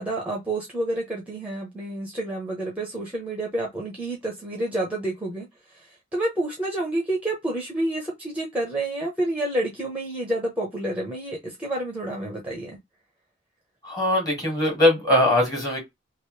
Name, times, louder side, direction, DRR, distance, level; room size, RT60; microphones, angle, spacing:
voice 1, 0.0-5.5 5.7-5.9 6.1-12.8, right 1 dB, 5° right, 0.8 m, -29 dB
voice 2, 13.8-15.8, left 1 dB, 20° left, 1.9 m, -21 dB
3.2 x 2.5 x 3.1 m
head